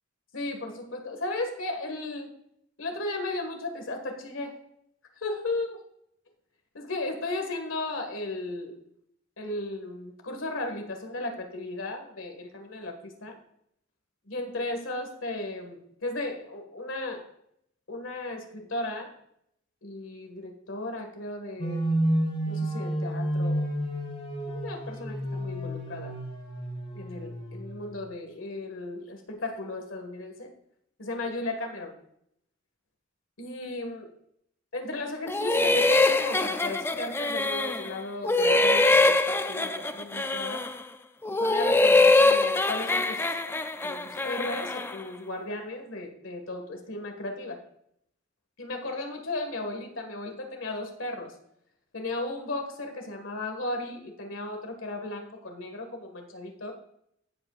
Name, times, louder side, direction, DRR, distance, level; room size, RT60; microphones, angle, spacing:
voice 1, 0.3-2.3 2.8-4.5 5.2-5.8 6.7-8.8 9.4-13.4 14.3-17.2 17.9-19.1 19.8-22.0 22.5-23.7 24.5-26.1 26.9-30.5 31.0-32.0 33.4-34.1 34.7-40.6 41.4-43.3 43.8-47.6 48.6-51.3 51.9-56.7, left 2 dB, 75° left, 4 dB, 1.8 m, -35 dB
sound 1, 21.6-27.8, right 1 dB, 30° left, 3.2 m, -30 dB
sound 2, 35.3-37.9 38.2-40.8 41.2-45.0, left 2 dB, 10° left, 0.4 m, -23 dB
16.0 x 7.9 x 2.5 m, 0.74 s
head